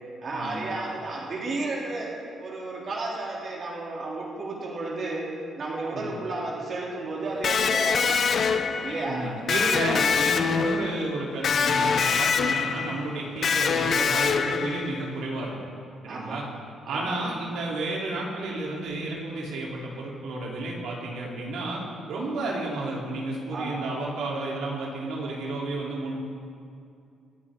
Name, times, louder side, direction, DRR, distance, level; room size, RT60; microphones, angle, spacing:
voice 1, 0.2-8.3 8.8-9.3 9.8-10.1 16.1-16.4 16.8-17.2 23.5-23.8, right 2 dB, 50° right, -4 dB, 3.2 m, -33 dB
Electric guitar, 7.4-15.1, left 6 dB, 55° left, 0.8 m, -25 dB
voice 2, 9.0-15.6 16.0-16.4 16.8-21.8 22.1-26.1, right 2 dB, 80° right, -3 dB, 3.6 m, -32 dB
26.0 x 9.8 x 3.9 m, 2.4 s
cardioid pair, 90°, 0 cm